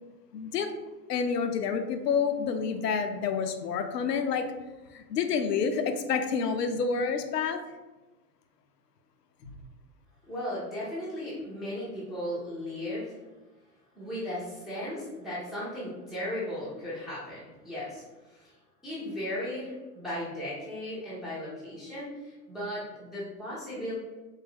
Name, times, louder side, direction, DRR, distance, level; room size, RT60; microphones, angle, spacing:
voice 1, 0.3-0.7 1.1-4.5 4.9-7.6 9.4-9.5, left 6 dB, 75° left, 7 dB, 0.6 m, -28 dB
voice 2, 10.3-13.2 13.9-18.5 18.8-23.9, left 1 dB, ahead, -9 dB, 0.4 m, -36 dB
3.3 x 2.1 x 3.5 m, 1.2 s
hypercardioid pair, 110°, 48 cm